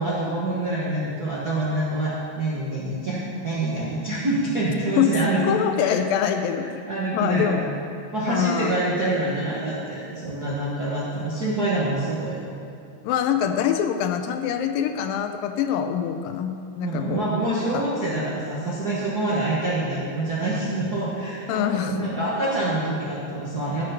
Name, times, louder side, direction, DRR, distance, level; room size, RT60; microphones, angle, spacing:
voice 1, 0.0-6.3 6.9-7.7 8.1-12.4 16.8-23.9, right 2 dB, 50° right, -8 dB, 1.1 m, -26 dB
voice 2, 5.0-6.8 7.1-7.6 8.3-8.8 13.0-17.3 17.7-17.8 21.5-22.1, left 9 dB, 85° left, 7 dB, 2.3 m, -24 dB
12.5 x 6.3 x 5.8 m, 2.4 s
omnidirectional pair, 4.1 m